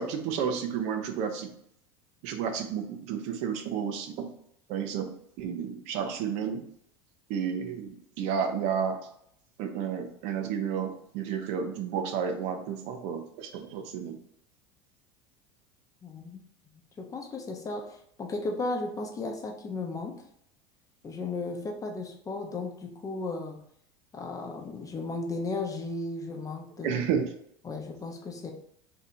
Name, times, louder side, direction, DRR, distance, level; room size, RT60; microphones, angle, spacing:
voice 1, 0.0-1.5 2.2-4.3 4.7-5.1 5.4-6.6 7.3-7.9 8.2-9.0 9.6-14.2 26.8-27.3, right 7 dB, 60° right, 6 dB, 0.6 m, -31 dB
voice 2, 16.0-16.4 17.0-20.2 21.0-23.6 24.1-27.0 27.6-28.5, left 3 dB, 25° left, 2 dB, 0.7 m, -35 dB
2.7 x 2.5 x 4.1 m, 0.69 s
hypercardioid pair, 90°, 13 cm